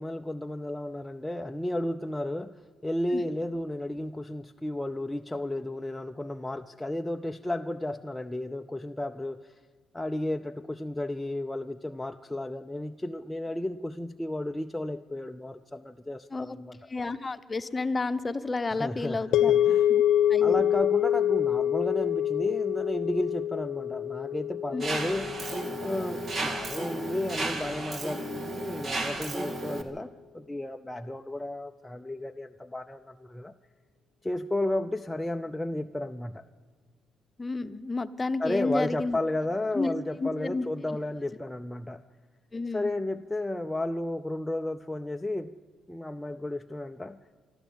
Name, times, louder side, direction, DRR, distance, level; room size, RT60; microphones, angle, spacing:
voice 1, 0.0-9.5 9.9-16.8 18.7-19.9 20.4-25.4 25.8-30.1 30.3-33.5 34.2-36.4 38.4-42.0 42.7-45.5 45.9-47.2, left 1 dB, 10° left, 4 dB, 0.6 m, -33 dB
voice 2, 16.9-19.5 19.9-20.0 20.3-20.6 24.7-24.8 37.4-39.2 39.7-39.9 40.2-40.7 42.5-42.9, left 3 dB, 25° left, 10 dB, 0.9 m, -31 dB
sound 1, 19.3-27.6, left 10 dB, 80° left, 0.8 m, -26 dB
Mechanisms, 24.8-29.8, right 2 dB, 45° right, 2.3 m, -34 dB
25.0 x 12.5 x 8.6 m, 1.5 s
cardioid pair, 90°, 0 cm